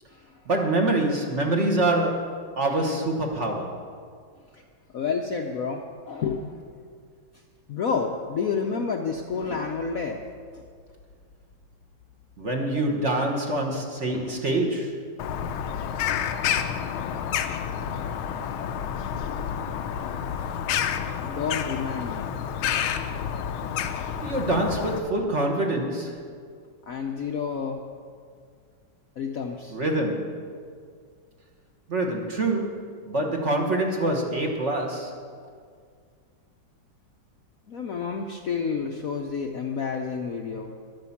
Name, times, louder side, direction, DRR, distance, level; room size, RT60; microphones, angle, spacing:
voice 1, 0.5-3.9 12.4-15.0 24.2-26.3 29.7-30.4 31.9-35.2, right 2 dB, 40° right, 1 dB, 1.3 m, -26 dB
voice 2, 4.9-6.6 7.7-10.2 10.5-10.6 14.1-14.4 21.2-22.3 26.9-27.8 29.2-29.8 37.7-40.7, left 5 dB, 60° left, 2 dB, 0.9 m, -30 dB
Bird vocalization bird call bird song, 15.2-25.0, left 8 dB, 90° left, 1.5 m, -29 dB
11.5 x 9.4 x 7.1 m, 2.1 s
omnidirectional pair, 2.2 m